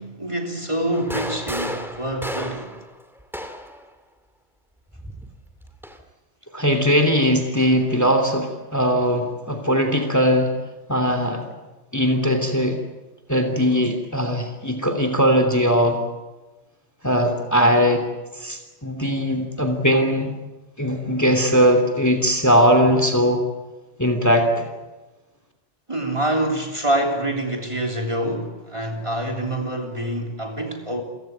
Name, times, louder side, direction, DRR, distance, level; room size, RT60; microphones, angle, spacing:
voice 1, 0.0-2.7 25.9-31.0, right 1 dB, 25° right, 3.2 m, -26 dB
sound 1, 0.9-3.8 4.9-6.0, equal, ahead, 2.3 m, -33 dB
voice 2, 6.5-10.5 10.9-11.4 11.9-12.8 13.3-16.0 17.0-18.1 18.3-20.3 20.8-23.5 24.0-24.7, equal, 15° left, 2.9 m, -19 dB
29.0 x 16.5 x 9.3 m
omnidirectional pair, 1.2 m